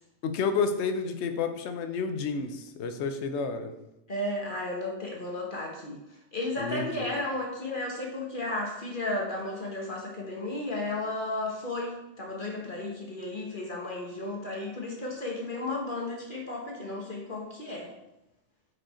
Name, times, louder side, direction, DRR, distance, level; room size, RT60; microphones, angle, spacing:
voice 1, 0.2-3.8 6.6-7.1, left 5 dB, 65° left, 8 dB, 0.9 m, -30 dB
voice 2, 4.1-6.0 6.3-17.9, left 2 dB, 40° left, -1 dB, 1.3 m, -34 dB
6.4 x 5.1 x 4.3 m, 0.91 s
omnidirectional pair, 1.3 m